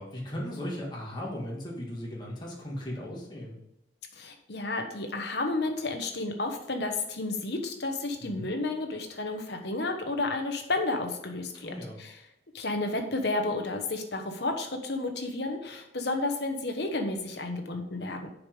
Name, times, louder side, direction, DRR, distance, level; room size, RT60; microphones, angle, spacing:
voice 1, 0.0-3.5 8.2-8.5 11.5-12.0, equal, 25° left, -3 dB, 1.7 m, -37 dB
voice 2, 4.1-12.2 12.5-18.3, left 2 dB, 60° left, 4 dB, 1.1 m, -31 dB
6.7 x 5.2 x 5.2 m, 0.85 s
head